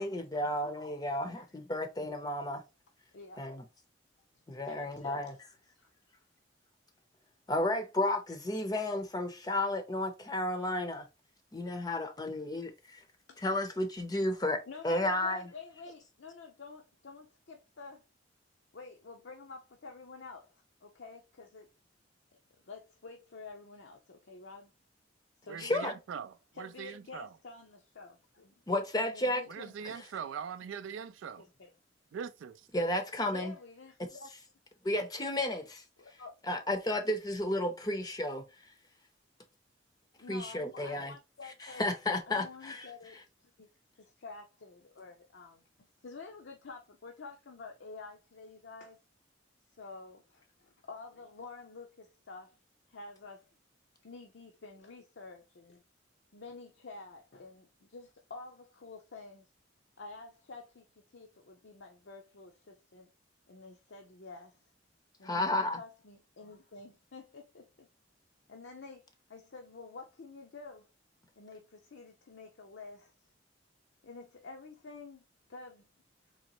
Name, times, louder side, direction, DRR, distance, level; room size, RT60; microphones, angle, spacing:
voice 1, 0.0-2.6 3.4-3.5 4.5-5.3 7.5-11.1 11.5-13.0 13.4-15.4 25.6-25.9 28.7-29.4 32.7-33.5 34.0-34.1 34.8-35.8 36.5-38.4 40.3-41.1 41.6-42.9 65.2-65.8, left 1 dB, 20° left, 0.6 m, -32 dB
voice 2, 4.7-5.3 5.7-5.9 13.3-13.4 14.7-18.0 18.7-20.5 20.8-21.7 22.6-24.7 25.4-25.9 26.5-30.0 31.4-31.7 33.3-34.3 36.0-36.3 40.2-41.8 42.3-43.7 43.9-45.6 46.0-49.0 49.8-52.6 52.9-53.5 54.0-55.8 56.3-59.5 60.0-60.9 61.1-63.1 63.5-64.6 65.2-67.9 68.5-70.9 71.4-73.1 74.0-75.2 75.5-75.9, left 3 dB, 70° left, 0.6 m, -49 dB
voice 3, 25.5-26.3 26.6-27.3 29.5-31.4 32.1-32.6, right 7 dB, 85° right, 0.3 m, -41 dB
4.0 x 3.1 x 2.9 m
head